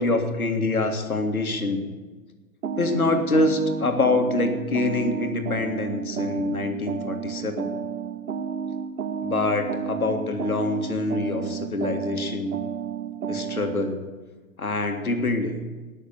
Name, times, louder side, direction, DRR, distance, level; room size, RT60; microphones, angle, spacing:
voice 1, 0.0-1.9 2.8-7.7 9.2-12.6 13.3-14.0 14.6-15.6, left 2 dB, 85° left, 5 dB, 1.9 m, -25 dB
sound 1, 2.6-13.9, right 6 dB, 75° right, 0.9 m, -31 dB
18.5 x 6.5 x 7.0 m, 1.3 s
figure-of-eight pair, 120°, 42 cm